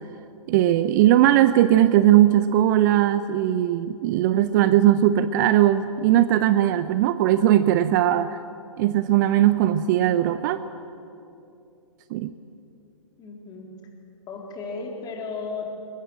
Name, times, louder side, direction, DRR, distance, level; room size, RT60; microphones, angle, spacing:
voice 1, 0.5-8.4 8.8-10.6 12.1-12.3, right 12 dB, 35° right, 13 dB, 0.6 m, -19 dB
voice 2, 13.2-13.7 14.3-15.7, left 4 dB, 20° left, 1 dB, 3.8 m, -34 dB
22.0 x 21.5 x 8.9 m, 2.8 s
figure-of-eight pair, 120°, 18 cm